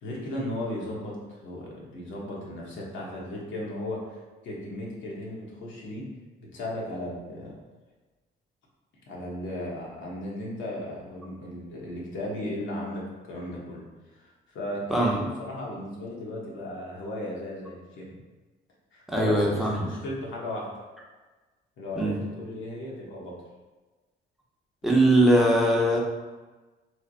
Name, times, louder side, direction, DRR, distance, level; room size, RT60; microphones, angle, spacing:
voice 1, 0.0-6.0 6.5-7.5 9.1-13.8 14.2-18.2 18.9-20.7 21.8-23.3, left 1 dB, 75° left, -4 dB, 1.1 m, -36 dB
voice 2, 19.1-19.9 22.0-22.2 24.8-26.0, right 1 dB, ahead, -3 dB, 0.7 m, -21 dB
3.2 x 2.1 x 3.9 m, 1.2 s
cardioid pair, 90°, 20 cm